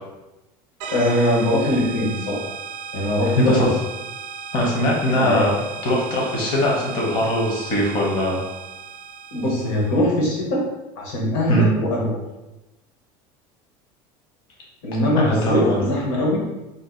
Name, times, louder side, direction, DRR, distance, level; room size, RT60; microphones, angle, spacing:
sound 1, 0.8-10.2, right 7 dB, 60° right, 0.4 m, -36 dB
voice 1, 0.9-2.4 2.9-3.7 5.2-5.4 9.3-10.6 11.0-12.2 14.8-16.4, left 1 dB, 60° left, -3 dB, 1.1 m, -21 dB
voice 2, 3.4-3.7 4.5-5.6 5.8-8.4 11.5-11.7 15.1-15.8, equal, 40° left, -3 dB, 0.8 m, -20 dB
2.7 x 2.3 x 3.7 m, 1.0 s
cardioid pair, 170°, 12 cm